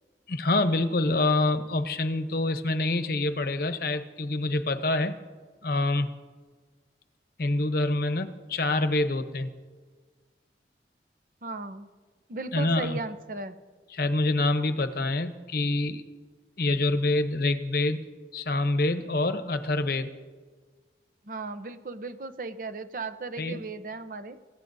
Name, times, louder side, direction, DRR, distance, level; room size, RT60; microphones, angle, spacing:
voice 1, 0.3-5.2 5.6-6.1 7.4-9.5 12.5-13.0 13.9-16.0 16.6-18.0 18.3-20.1 23.4-23.6, left 2 dB, 55° left, 10 dB, 0.8 m, -26 dB
voice 2, 11.4-11.9 12.3-13.6 21.3-24.4, right 3 dB, 50° right, 10 dB, 0.7 m, -36 dB
29.0 x 15.5 x 2.7 m, 1.5 s
head